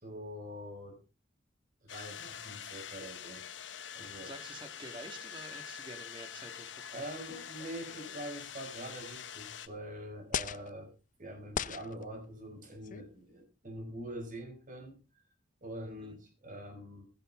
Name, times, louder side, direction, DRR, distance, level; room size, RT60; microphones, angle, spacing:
voice 1, 0.0-1.0 1.8-3.4 3.9-4.3 6.9-10.9 11.2-15.0 15.6-17.0, right 1 dB, 45° right, 5 dB, 5.6 m, -44 dB
sound 1, 1.9-9.7, left 8 dB, 75° left, 1.2 m, -45 dB
voice 2, 4.2-7.0 16.0-16.2, right 2 dB, 25° right, 6 dB, 2.2 m, -49 dB
sound 2, 7.3-8.3 9.1-9.2 10.3-10.7 11.5-12.0 12.8-13.1, left 7 dB, 45° left, 0.6 m, -38 dB
16.0 x 13.0 x 3.9 m, 0.33 s
head